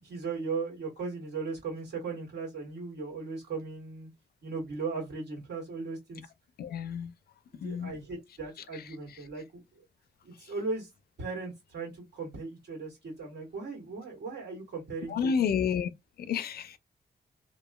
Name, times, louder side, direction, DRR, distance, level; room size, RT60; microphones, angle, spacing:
voice 1, 0.0-4.1 4.4-6.2 7.5-9.8 10.2-10.9 11.2-15.3, right 4 dB, 85° right, 1.7 m, -37 dB
voice 2, 6.6-7.1 7.6-7.9 15.1-15.9 16.2-16.8, left 7 dB, 65° left, 0.4 m, -30 dB
3.0 x 2.3 x 2.2 m
cardioid pair, 100°, 17 cm